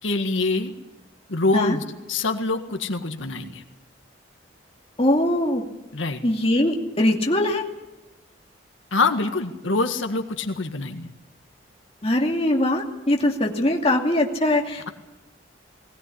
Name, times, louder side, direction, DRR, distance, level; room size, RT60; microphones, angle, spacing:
voice 1, 0.0-0.8 1.3-3.6 5.9-6.2 8.9-11.1, left 3 dB, 90° left, 5 dB, 1.8 m, -25 dB
voice 2, 5.0-5.6 6.2-7.6 12.0-14.9, left 1 dB, 30° left, 1 dB, 2.5 m, -21 dB
19.5 x 18.0 x 10.0 m, 1.0 s
head